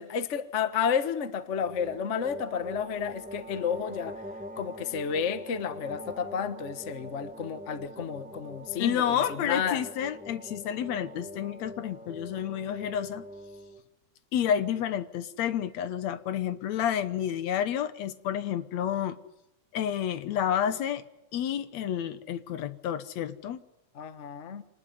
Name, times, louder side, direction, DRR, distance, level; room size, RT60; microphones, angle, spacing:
voice 1, 0.0-4.2 4.6-9.8 23.9-24.6, left 7 dB, 50° left, 11 dB, 0.8 m, -31 dB
sound 1, 1.6-13.8, equal, 10° right, 0.5 m, -43 dB
voice 2, 8.8-13.3 14.3-19.2 19.7-21.0 21.3-23.6, left 9 dB, 70° left, 13 dB, 2.3 m, -30 dB
26.0 x 19.5 x 9.9 m, 0.88 s
omnidirectional pair, 3.3 m